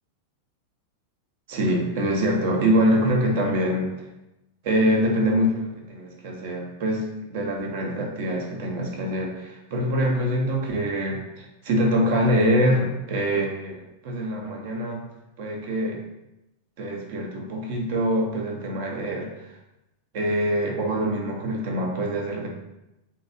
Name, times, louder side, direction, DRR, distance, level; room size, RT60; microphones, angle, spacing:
voice 1, 1.5-4.1 4.6-15.0 15.4-16.0 16.8-19.5 20.1-22.5, equal, 50° right, 0 dB, 0.6 m, -24 dB
3.0 x 2.7 x 2.6 m, 0.92 s
figure-of-eight pair, 90°, 0 cm